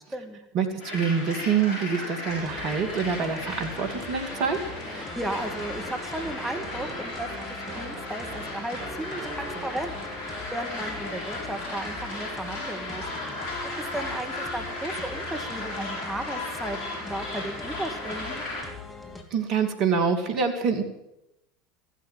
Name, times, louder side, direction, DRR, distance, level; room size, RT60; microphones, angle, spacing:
voice 1, 0.0-0.4 5.0-13.0 13.8-18.4, right 1 dB, 5° right, 3 dB, 2.2 m, -35 dB
voice 2, 0.5-4.6 19.3-20.8, right 6 dB, 55° right, 6 dB, 2.4 m, -26 dB
sound 1, 0.8-18.6, left 2 dB, 50° left, 7.8 m, -36 dB
sound 2, 2.3-19.2, left 3 dB, 20° left, 3.1 m, -42 dB
sound 3, 3.7-11.2, right 3 dB, 25° right, 3.1 m, -44 dB
15.0 x 12.5 x 7.5 m, 0.89 s
hypercardioid pair, 80°, 0 cm